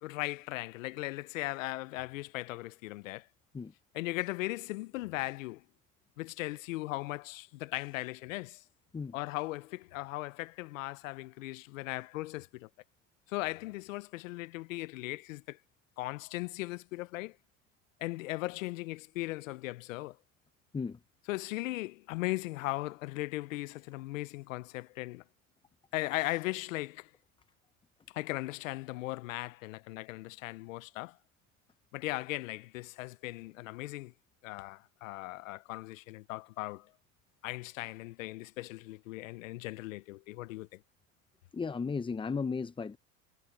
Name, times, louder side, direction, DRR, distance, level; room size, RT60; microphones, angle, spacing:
voice 1, 0.0-3.3 3.9-5.6 6.2-8.6 9.1-12.7 13.3-15.6 16.0-17.4 18.0-20.2 21.2-25.2 25.9-27.1 28.1-31.2 31.9-34.1 34.4-36.9 37.4-40.8, left 19 dB, 80° left, 0.9 m, -38 dB
voice 2, 41.5-43.0, left 5 dB, 15° left, 0.7 m, -35 dB
hypercardioid pair, 90°, 39 cm